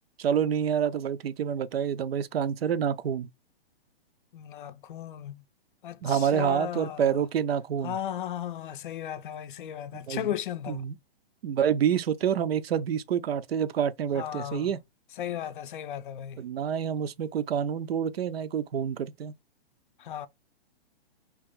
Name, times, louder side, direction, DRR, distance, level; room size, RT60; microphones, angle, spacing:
voice 1, 0.2-3.3 6.0-8.0 10.1-10.4 10.7-10.9 11.4-14.8 16.4-19.3, right 8 dB, 75° right, 0.6 m, -27 dB
voice 2, 4.3-5.4 5.8-7.2 7.8-10.8 14.1-14.7 15.2-16.4 20.0-20.3, left 11 dB, 55° left, 0.5 m, -35 dB
3.0 x 2.6 x 3.6 m
hypercardioid pair, 135°, 30 cm